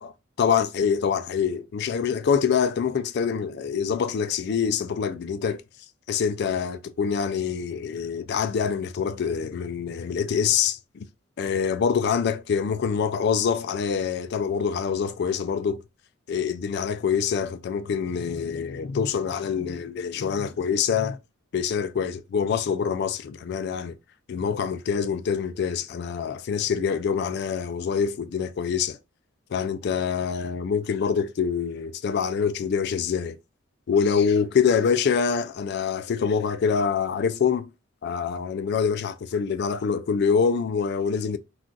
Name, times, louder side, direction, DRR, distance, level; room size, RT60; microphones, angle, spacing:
voice 1, 0.4-5.6 6.1-11.1 11.4-15.8 16.3-21.2 21.5-24.0 24.3-29.0 29.5-33.4 33.9-37.7 38.0-41.4, left 6 dB, 55° left, 0.3 m, -25 dB
2.4 x 2.3 x 3.8 m
head